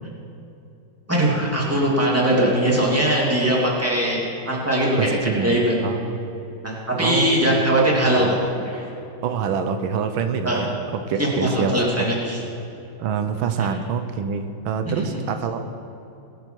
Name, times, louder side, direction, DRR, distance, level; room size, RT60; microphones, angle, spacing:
voice 1, 1.1-5.7 6.6-8.3 8.6-8.9 10.4-10.6 11.2-12.4 13.6-13.7 14.8-15.2, right 1 dB, 5° right, -4 dB, 2.6 m, -21 dB
voice 2, 5.0-6.3 7.0-7.5 8.2-8.3 9.2-11.8 13.0-15.6, right 6 dB, 90° right, 8 dB, 1.6 m, -26 dB
20.5 x 9.5 x 4.6 m, 2.8 s
omnidirectional pair, 2.1 m